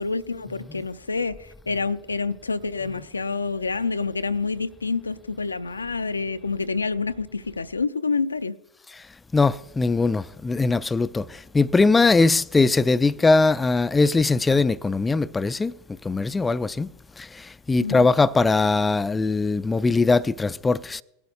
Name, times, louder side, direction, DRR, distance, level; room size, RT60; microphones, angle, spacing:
voice 1, 0.0-8.6 17.8-18.1, left 4 dB, 80° left, 0.4 m, -28 dB
voice 2, 9.3-15.7 16.0-16.9 17.2-21.0, left 3 dB, 15° left, 0.3 m, -21 dB
19.0 x 11.5 x 2.4 m
figure-of-eight pair, 85°, 0 cm